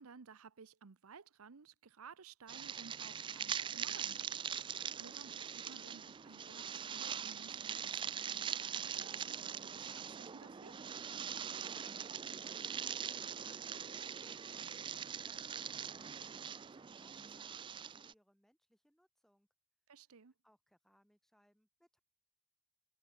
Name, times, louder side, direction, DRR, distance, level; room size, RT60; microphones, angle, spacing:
voice 1, 0.0-10.8 19.9-20.3, right 5 dB, 70° right, 0.7 m, -57 dB
sound 1, 2.5-18.1, right 8 dB, 20° right, 0.3 m, -42 dB
voice 2, 11.3-19.5 20.4-22.0, equal, ahead, 3.3 m, -71 dB
head